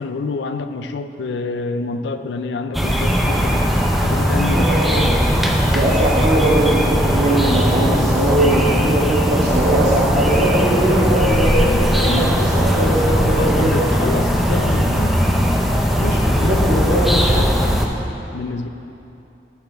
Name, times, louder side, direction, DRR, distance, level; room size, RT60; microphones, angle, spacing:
voice 1, 0.0-3.7 4.0-5.2 11.6-15.2 15.8-17.9 18.3-18.7, left 4 dB, 85° left, 9 dB, 0.4 m, -27 dB
sound 1, 2.7-17.9, equal, ahead, 0.5 m, -18 dB
voice 2, 4.5-5.0 5.7-11.6 12.0-12.3 12.5-13.7 16.5-17.1, right 1 dB, 40° right, -6 dB, 1.9 m, -20 dB
10.0 x 7.7 x 3.5 m, 2.9 s
head